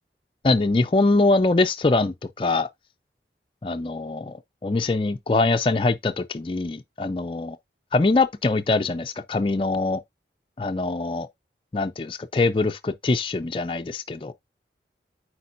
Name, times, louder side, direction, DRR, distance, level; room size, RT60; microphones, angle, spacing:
voice 1, 0.4-2.7 3.6-4.4 4.6-7.5 7.9-10.0 10.6-11.3 11.7-14.3, left 3 dB, 30° left, 0.4 m, -23 dB
8.5 x 4.6 x 2.5 m
head